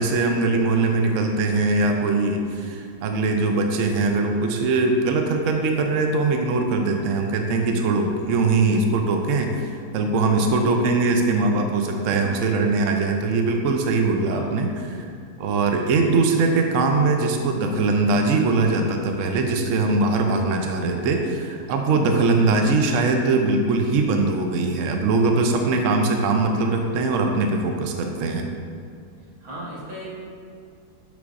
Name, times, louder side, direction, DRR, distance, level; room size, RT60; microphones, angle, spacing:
voice 1, 0.0-15.0 15.4-28.5, right 3 dB, 80° right, 3 dB, 0.6 m, -21 dB
voice 2, 12.1-12.5 14.2-14.6 29.4-30.1, right 1 dB, 55° right, -7 dB, 1.9 m, -35 dB
8.0 x 5.1 x 2.5 m, 2.2 s
omnidirectional pair, 1.9 m